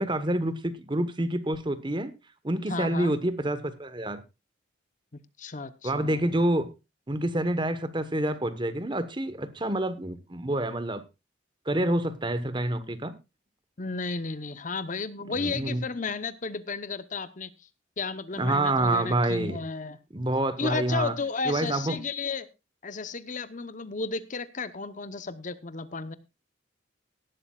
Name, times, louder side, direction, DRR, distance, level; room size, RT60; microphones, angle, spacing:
voice 1, 0.0-2.1 2.4-4.2 5.8-6.7 7.1-11.0 11.7-13.1 15.4-15.8 18.4-19.6 20.1-21.1 21.4-22.0, right 1 dB, 25° right, 13 dB, 1.1 m, -27 dB
voice 2, 2.7-3.1 5.4-6.2 13.8-17.5 18.0-20.0 20.6-22.5 22.8-26.2, left 4 dB, 40° left, 14 dB, 0.8 m, -33 dB
18.0 x 11.5 x 2.3 m, 0.26 s
head